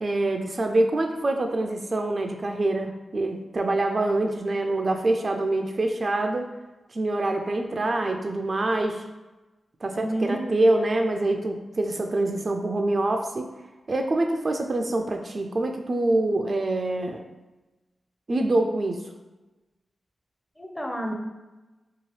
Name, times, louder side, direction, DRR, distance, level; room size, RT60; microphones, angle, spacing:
voice 1, 0.0-6.5 6.9-9.0 9.8-13.5 13.9-17.3 18.3-19.0, right 2 dB, 50° right, 4 dB, 0.3 m, -25 dB
voice 2, 9.9-10.6 20.6-21.1, right 1 dB, 15° left, 1 dB, 0.6 m, -30 dB
2.8 x 2.3 x 3.1 m, 1.1 s
cardioid pair, 45°, 0 cm